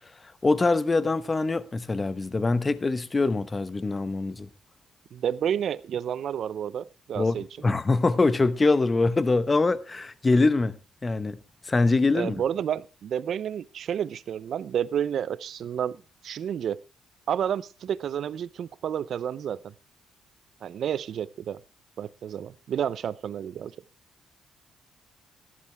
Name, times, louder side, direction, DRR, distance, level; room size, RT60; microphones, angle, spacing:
voice 1, 0.4-4.5 7.2-10.8 11.0-11.4 11.6-12.4, left 3 dB, 25° left, 0.9 m, -24 dB
voice 2, 5.1-7.5 12.1-16.8 17.3-19.7 20.6-21.6 22.0-23.7, right 9 dB, 65° right, 0.6 m, -30 dB
14.5 x 11.0 x 3.4 m
cardioid pair, 90°, 0 cm